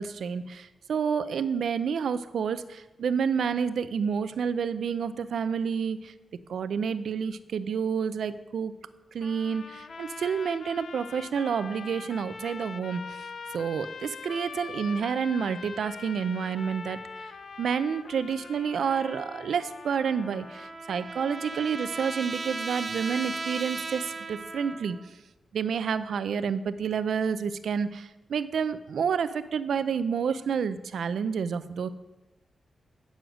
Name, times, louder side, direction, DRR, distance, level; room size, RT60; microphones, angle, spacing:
voice 1, 0.0-6.1 6.5-8.7 9.1-13.2 13.5-17.0 17.6-25.0 25.5-31.9, right 6 dB, 85° right, 13 dB, 0.5 m, -29 dB
sound 1, 9.2-20.8, left 5 dB, 55° left, 0.5 m, -43 dB
Trumpet, 19.9-25.1, right 3 dB, 35° right, 0.6 m, -37 dB
9.3 x 6.3 x 6.2 m, 1.1 s
wide cardioid pair, 120°, 0 cm